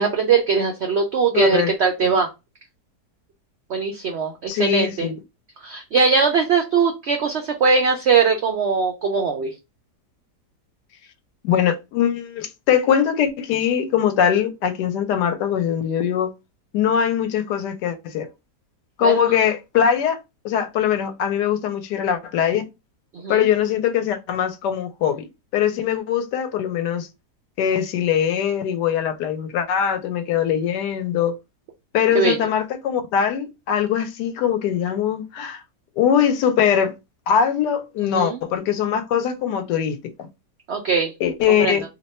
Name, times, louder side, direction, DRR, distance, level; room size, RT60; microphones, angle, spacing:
voice 1, 0.0-2.3 3.7-5.1 5.6-9.5 19.0-19.2 23.1-23.4 32.1-32.4 38.0-38.4 40.7-41.1 41.6-41.8, right 5 dB, 90° right, 0.5 m, -20 dB
voice 2, 1.3-1.7 2.0-2.1 4.5-5.2 11.4-16.3 16.7-18.3 19.0-20.2 20.4-22.7 23.3-25.3 25.5-27.1 27.6-31.4 31.9-35.6 36.0-36.9 37.3-40.3 41.2-41.8, left 8 dB, 85° left, 1.2 m, -21 dB
2.8 x 2.2 x 4.1 m
omnidirectional pair, 1.8 m